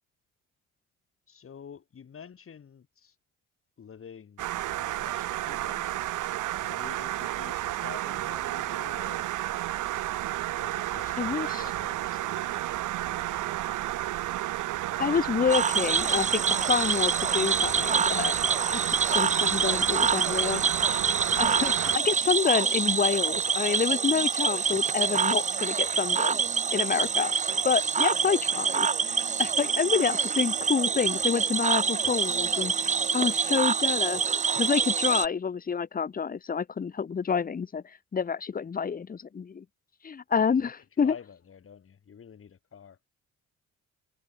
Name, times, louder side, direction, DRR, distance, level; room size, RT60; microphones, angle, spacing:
voice 1, 1.3-3.2 3.8-6.2 6.6-9.3 10.6-13.9 40.6-43.0, left 7 dB, 45° left, 3.9 m, -49 dB
sound 1, 4.4-22.0, right 15 dB, 85° right, 1.6 m, -32 dB
voice 2, 11.2-11.6 15.0-16.4 16.7-18.4 18.7-20.6 21.4-26.4 26.7-27.3 27.6-34.3 34.6-37.8 38.1-39.6 40.0-41.1, left 6 dB, 30° left, 0.9 m, -28 dB
Cricket / Frog, 15.5-35.3, right 6 dB, 25° right, 0.5 m, -26 dB
cardioid pair, 90°, 30 cm